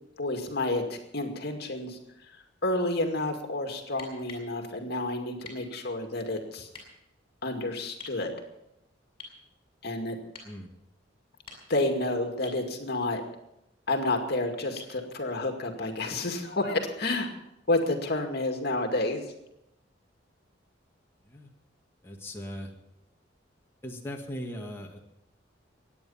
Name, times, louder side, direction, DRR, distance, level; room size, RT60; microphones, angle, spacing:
voice 1, 0.2-2.0 2.6-6.7 7.4-8.3 9.8-10.2 11.7-13.2 13.9-17.3 17.7-19.2, left 2 dB, 60° left, 4 dB, 2.2 m, -30 dB
sound 1, 4.0-4.5 5.4-5.7 6.7-6.9 8.0-8.2 9.2-9.4 10.3-10.5 11.3-11.9 12.4-12.6 14.8-15.0 16.8-16.9, left 4 dB, 30° left, 6.3 m, -46 dB
voice 2, 22.0-22.7 23.8-25.0, equal, 15° left, -1 dB, 1.9 m, -39 dB
23.5 x 9.7 x 5.7 m, 0.83 s
head